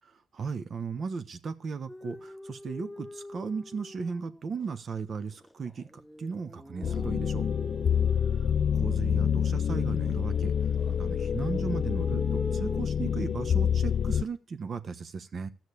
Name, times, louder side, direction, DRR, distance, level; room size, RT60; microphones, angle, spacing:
voice 1, 0.3-5.9 6.2-7.4 8.7-10.5 10.9-15.5, right 5 dB, 45° right, 11 dB, 1.1 m, -36 dB
sound 1, 1.9-4.8 5.3-9.5 10.0-10.9 11.2-12.8, left 1 dB, 5° left, 0.7 m, -43 dB
sound 2, 6.8-14.2, left 8 dB, 55° left, 0.5 m, -27 dB
13.0 x 6.3 x 8.4 m, 0.37 s
cardioid pair, 90°, 0 cm